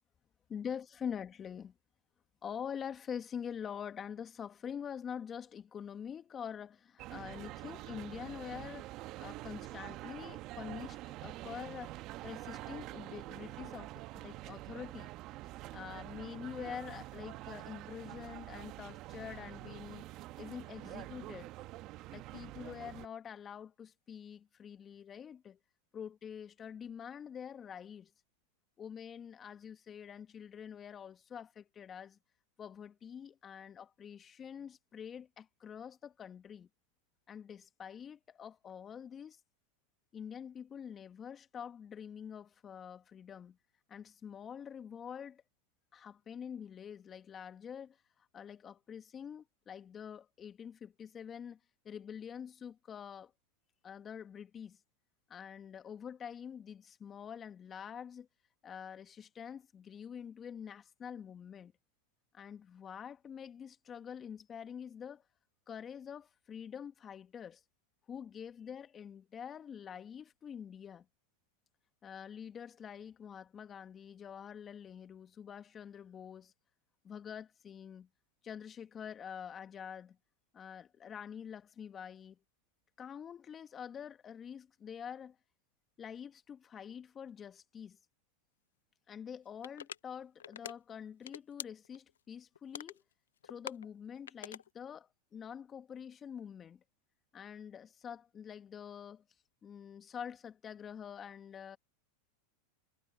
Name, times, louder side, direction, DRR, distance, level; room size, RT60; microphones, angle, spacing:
voice 1, 0.5-1.7 2.4-12.0 12.2-15.1 15.7-20.1 20.4-21.5 22.1-25.6 25.9-28.1 28.8-32.2 32.6-36.7 37.3-39.4 40.1-43.6 43.9-45.4 45.9-48.0 48.3-51.6 51.9-53.3 53.8-54.8 55.3-58.3 58.6-61.7 62.3-65.2 65.7-67.6 68.1-71.1 72.0-76.5 77.0-78.1 78.4-80.2 80.5-82.4 83.0-85.4 86.0-88.0 89.1-93.0 93.4-96.8 97.3-99.2 99.6-101.8, left 8 dB, 30° left, 1.8 m, -46 dB
sound 1, 7.0-23.1, right 17 dB, 50° right, 1.5 m, -46 dB
sound 2, 89.6-90.0 90.4-90.7 91.1-92.1 92.5-93.0 93.4-94.7, left 9 dB, 85° left, 0.6 m, -44 dB
hypercardioid pair, 105°, 0 cm